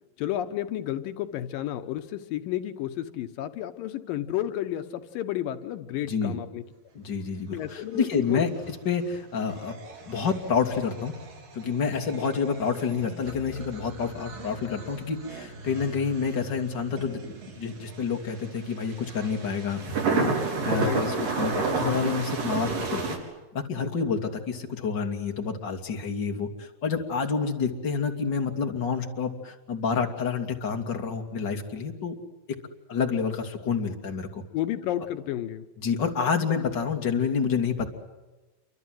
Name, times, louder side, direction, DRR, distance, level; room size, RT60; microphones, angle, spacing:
voice 1, 0.2-6.6 7.5-8.4 20.8-21.3 34.5-35.7, left 12 dB, 80° left, 9 dB, 2.8 m, -31 dB
voice 2, 6.0-6.4 6.9-8.5 8.8-9.7 10.1-11.1 11.5-19.8 20.1-20.3 20.6-23.0 23.5-32.1 32.9-34.4 35.8-37.9, left 6 dB, 35° left, 3 dB, 3.0 m, -28 dB
sound 1, 8.4-23.2, right 4 dB, 75° right, 6.3 m, -33 dB
28.5 x 25.0 x 7.8 m, 1.2 s
omnidirectional pair, 3.9 m